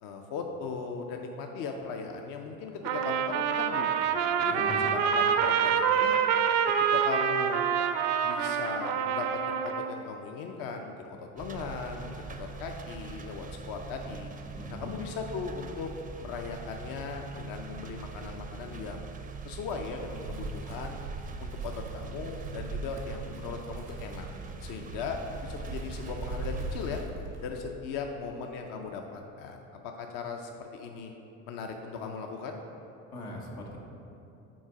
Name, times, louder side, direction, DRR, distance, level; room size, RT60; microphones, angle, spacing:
voice 1, 0.0-6.1 6.9-7.6 8.2-14.3 14.7-15.9 16.2-19.1 19.4-21.0 21.4-24.3 24.6-27.0 27.4-31.1 31.5-32.6, left 5 dB, 50° left, 3 dB, 0.6 m, -38 dB
Trumpet, 2.8-10.0, right 7 dB, 65° right, 0.6 m, -26 dB
voice 2, 4.5-5.0 14.5-15.0 33.1-33.8, left 1 dB, 80° left, -2 dB, 1.1 m, -40 dB
sound 1, 11.4-27.1, right 4 dB, 20° right, 0.5 m, -43 dB
Wind, 20.0-27.7, right 2 dB, 90° right, 1.0 m, -40 dB
6.2 x 3.9 x 4.9 m, 2.8 s
hypercardioid pair, 60°, 42 cm